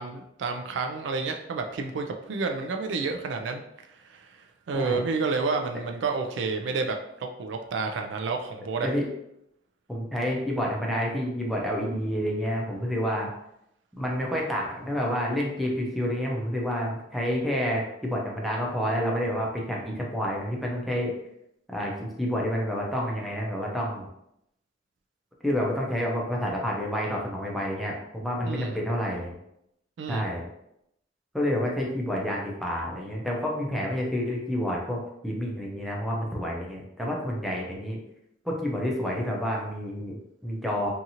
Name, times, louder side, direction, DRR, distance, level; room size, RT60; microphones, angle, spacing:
voice 1, 0.0-3.6 3.9-4.3 4.7-8.9 28.4-28.8 30.0-30.3, right 4 dB, 65° right, 4 dB, 0.3 m, -30 dB
voice 2, 9.9-13.3 14.0-21.1 21.7-24.1 25.4-29.3 30.1-30.4 31.3-38.0 38.4-40.9, equal, ahead, -2 dB, 0.5 m, -29 dB
2.8 x 2.5 x 2.7 m, 0.79 s
head